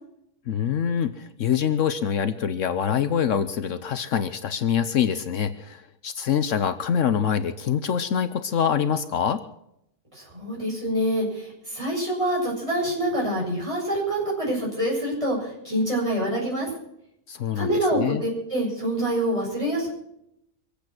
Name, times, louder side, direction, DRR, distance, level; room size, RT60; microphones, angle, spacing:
voice 1, 0.5-9.4 17.3-18.2, left 8 dB, 70° left, 11 dB, 1.1 m, -25 dB
voice 2, 10.1-16.7 17.5-19.9, right 1 dB, 25° right, -4 dB, 6.9 m, -26 dB
24.5 x 8.6 x 6.0 m, 0.78 s
omnidirectional pair, 1.4 m